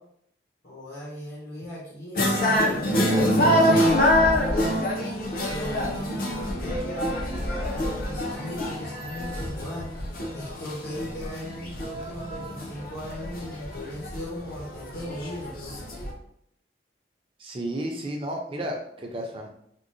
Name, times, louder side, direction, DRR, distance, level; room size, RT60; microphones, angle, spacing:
voice 1, 0.6-4.8 5.5-7.1 7.7-9.9 10.3-15.8, left 1 dB, 75° left, -7 dB, 0.9 m, -38 dB
sound 1, 2.2-16.1, equal, 50° left, 0.5 m, -25 dB
voice 2, 17.4-19.5, right 1 dB, 30° right, 1 dB, 0.4 m, -32 dB
3.6 x 2.0 x 2.6 m, 0.71 s
head